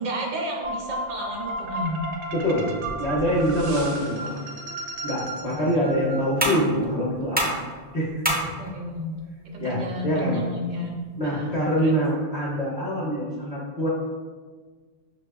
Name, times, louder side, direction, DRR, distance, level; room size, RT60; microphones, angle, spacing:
voice 1, 0.0-2.0 5.5-5.6 8.4-9.1 9.4-11.9, equal, 50° right, -1 dB, 0.7 m, -32 dB
sound 1, 0.6-6.7, right 1 dB, 85° right, 0.9 m, -34 dB
voice 2, 2.3-2.7 3.0-4.4 5.0-7.6 7.9-8.5 9.6-10.4 11.2-13.9, equal, 45° left, -6 dB, 0.7 m, -25 dB
sound 2, 4.9-11.9, right 1 dB, 15° right, 0.4 m, -33 dB
5.9 x 2.2 x 2.3 m, 1.5 s
omnidirectional pair, 1.1 m